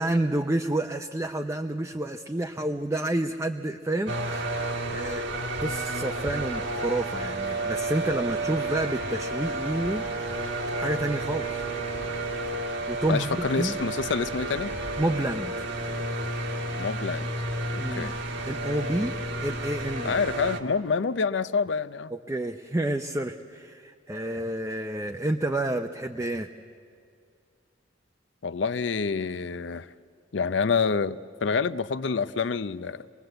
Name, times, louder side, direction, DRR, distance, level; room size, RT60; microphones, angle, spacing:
voice 1, 0.0-4.6 4.9-5.2 5.6-10.0 10.7-11.6 12.9-13.8 15.0-15.6 17.8-18.1 18.4-19.1 19.4-20.2 22.1-26.5, right 1 dB, 15° right, 4 dB, 0.6 m, -29 dB
sound 1, 4.1-20.6, right 2 dB, 65° right, 1.6 m, -31 dB
voice 2, 13.1-14.8 16.8-17.3 17.7-18.1 20.0-22.1 28.4-29.9 30.3-33.0, left 5 dB, 65° left, 14 dB, 0.6 m, -27 dB
26.0 x 20.0 x 7.9 m, 2.3 s
head